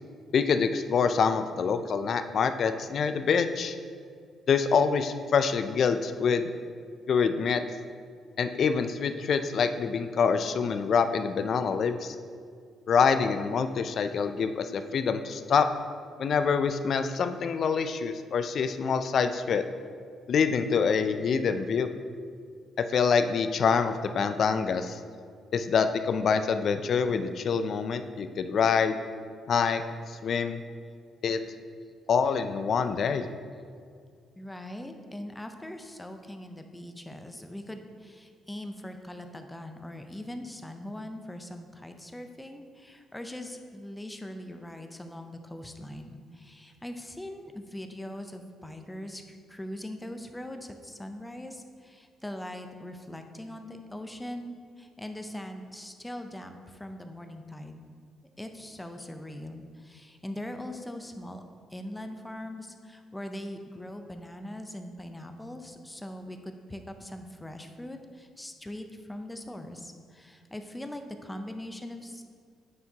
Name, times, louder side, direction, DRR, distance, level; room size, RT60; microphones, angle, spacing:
voice 1, 0.3-3.8 4.5-6.5 7.1-7.6 8.4-12.2 12.9-15.7 16.2-19.6 20.3-21.9 22.8-25.0 25.5-29.0 29.5-29.8 30.1-30.6 31.2-31.4 32.1-33.2, left 6 dB, 60° left, 9 dB, 0.3 m, -26 dB
voice 2, 34.4-57.8 58.4-61.4 61.7-72.2, left 1 dB, 10° left, 6 dB, 0.6 m, -41 dB
9.4 x 4.5 x 2.8 m, 2.2 s
cardioid pair, 90°, 0 cm